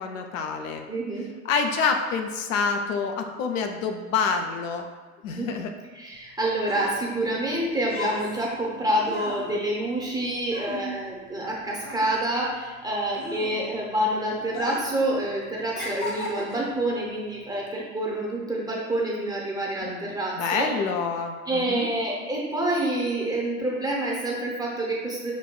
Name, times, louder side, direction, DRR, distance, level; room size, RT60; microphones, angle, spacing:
voice 1, 0.0-0.9 1.4-4.9 5.2-5.7 19.8-21.9, left 5 dB, 65° left, 4 dB, 0.5 m, -27 dB
voice 2, 0.9-1.3 5.3-5.5 5.9-20.7 21.5-25.3, right 1 dB, 10° right, -3 dB, 0.7 m, -27 dB
sound 1, 6.2-11.5 11.8-13.9 14.4-15.0 15.3-16.8 17.5-17.7, left 1 dB, 25° left, 0.8 m, -36 dB
6.1 x 2.2 x 2.2 m, 1.4 s
figure-of-eight pair, 75°, 43 cm